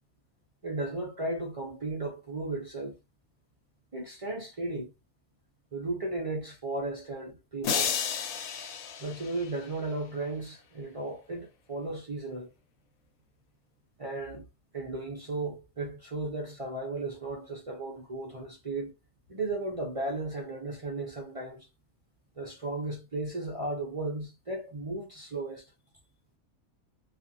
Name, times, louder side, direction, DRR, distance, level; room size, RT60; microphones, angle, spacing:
voice 1, 0.6-3.0 3.9-4.9 5.7-7.9 9.0-12.5 14.0-14.4 14.7-18.9 19.3-21.7 22.4-25.7, right 2 dB, 50° right, 0.4 m, -35 dB
sound 1, 7.6-9.9, left 7 dB, 75° left, 1.1 m, -32 dB
2.4 x 2.4 x 2.7 m
omnidirectional pair, 1.5 m